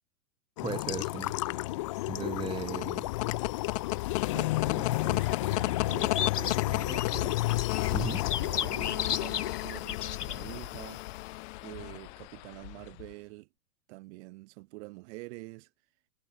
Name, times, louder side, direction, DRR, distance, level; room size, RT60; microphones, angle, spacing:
sound 1, 0.6-11.0, left 19 dB, 25° left, 0.4 m, -32 dB
voice 1, 0.6-1.3 2.1-3.0 7.9-8.2, right 6 dB, 10° right, 1.0 m, -36 dB
sound 2, 1.1-3.6 4.0-10.5, left 9 dB, 85° left, 1.1 m, -36 dB
voice 2, 2.1-3.0 4.3-7.4 8.4-11.0 11.6-13.5 13.9-15.7, right 24 dB, 45° right, 2.2 m, -46 dB
sound 3, 2.4-13.1, left 22 dB, 45° left, 2.0 m, -35 dB
hypercardioid pair, 115°, 46 cm